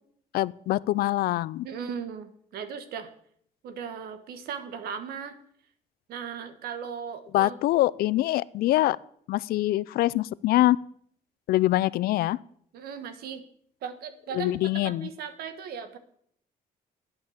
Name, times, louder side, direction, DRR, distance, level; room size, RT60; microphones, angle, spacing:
voice 1, 0.3-1.7 7.3-9.0 9.3-10.8 11.5-12.4 14.3-15.1, left 16 dB, 80° left, 21 dB, 0.4 m, -24 dB
voice 2, 1.6-3.1 3.6-5.4 6.1-7.6 12.7-13.4 13.8-14.5 14.8-16.0, right 7 dB, 90° right, 10 dB, 1.4 m, -37 dB
11.5 x 8.9 x 7.2 m, 0.65 s
cardioid pair, 160°, 15 cm